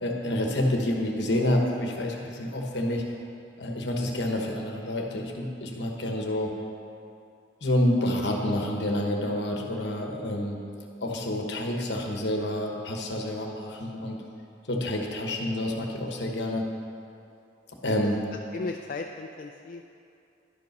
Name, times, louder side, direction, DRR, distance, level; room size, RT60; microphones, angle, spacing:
voice 1, 0.0-3.2 3.6-6.5 7.6-10.6 11.0-14.2 14.7-16.7 17.8-18.2, left 1 dB, 65° left, 1 dB, 1.1 m, -28 dB
voice 2, 18.5-19.8, left 3 dB, 50° left, 3 dB, 0.4 m, -36 dB
11.0 x 5.4 x 5.3 m, 2.6 s
head